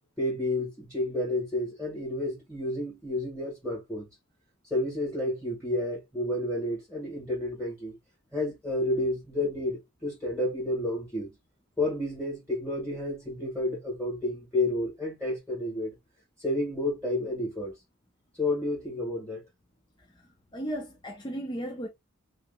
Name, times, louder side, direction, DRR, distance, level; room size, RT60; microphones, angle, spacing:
voice 1, 0.2-4.0 4.7-7.9 8.3-11.3 11.8-15.9 16.4-17.7 18.4-19.4, left 1 dB, 5° left, 1.7 m, -30 dB
voice 2, 20.5-21.9, equal, 20° left, 0.8 m, -35 dB
5.0 x 3.1 x 2.4 m
head